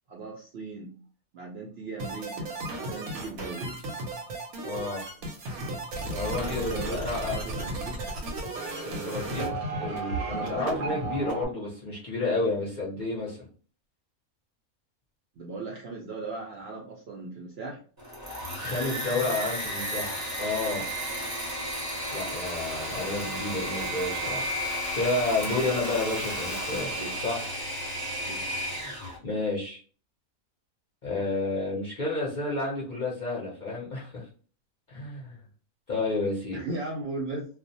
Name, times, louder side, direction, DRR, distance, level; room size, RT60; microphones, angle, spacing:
voice 1, 0.1-0.9 1.3-3.8 6.4-8.0 15.4-17.8 27.0-27.2 28.3-28.5 36.5-37.5, right 3 dB, 70° right, -2 dB, 0.6 m, -38 dB
sound 1, 2.0-11.5, right 2 dB, 85° right, 1.1 m, -34 dB
voice 2, 4.6-5.0 6.0-7.4 8.8-13.5 18.6-20.9 22.1-24.5 24.9-26.9 27.2-27.4 29.2-29.8 31.0-34.3 34.9-35.4 35.9-36.6, left 2 dB, 50° left, -5 dB, 0.6 m, -31 dB
Engine / Mechanisms, 18.0-29.2, equal, 20° right, 0.5 m, -33 dB
2.4 x 2.1 x 2.6 m, 0.40 s
omnidirectional pair, 1.5 m